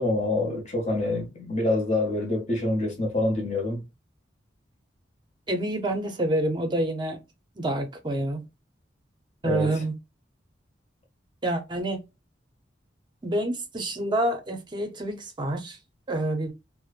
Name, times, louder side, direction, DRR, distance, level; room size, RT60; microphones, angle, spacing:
voice 1, 0.0-3.9 9.4-9.8, left 2 dB, 35° left, 1.0 m, -26 dB
voice 2, 5.5-7.2 7.6-8.4 9.4-9.9 11.4-12.0 13.2-15.8 16.1-16.5, right 1 dB, 25° right, 0.6 m, -27 dB
3.0 x 2.0 x 2.4 m
head